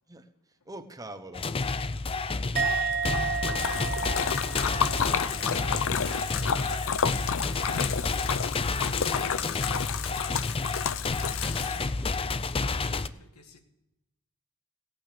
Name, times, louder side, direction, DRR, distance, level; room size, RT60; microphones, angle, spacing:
voice 1, 0.1-1.6 5.0-5.1 5.5-6.4 11.9-13.1, right 1 dB, 15° right, 1.0 m, -47 dB
sound 1, 1.3-13.1, left 3 dB, 25° left, 0.5 m, -30 dB
Musical instrument, 2.6-6.0 6.2-6.6, right 5 dB, 45° right, 0.8 m, -32 dB
Splash splatter, 2.9-12.1, left 7 dB, 65° left, 0.6 m, -31 dB
voice 2, 5.9-7.1 7.4-11.0 13.2-13.6, left 3 dB, 85° left, 2.0 m, -48 dB
17.0 x 8.9 x 6.8 m
head